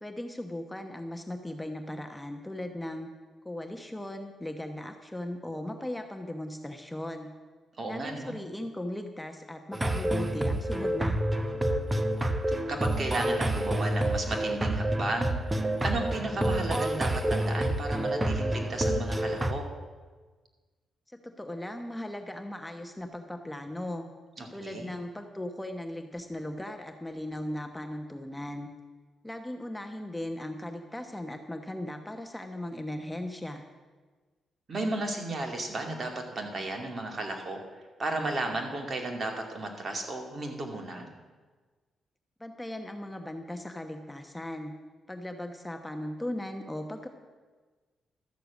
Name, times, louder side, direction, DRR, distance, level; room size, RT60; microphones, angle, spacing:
voice 1, 0.0-3.1 3.4-7.3 7.9-12.0 21.1-24.1 24.5-28.7 29.2-33.6 42.4-44.7 45.1-47.1, left 1 dB, 10° left, 5 dB, 1.0 m, -38 dB
voice 2, 7.8-8.3 12.5-19.6 24.4-24.9 34.7-37.6 38.0-41.1, right 2 dB, 40° right, 2 dB, 2.3 m, -34 dB
sound 1, 9.7-19.5, right 1 dB, 20° right, 1.0 m, -28 dB
13.0 x 6.7 x 8.2 m, 1.4 s
cardioid pair, 80°, 0 cm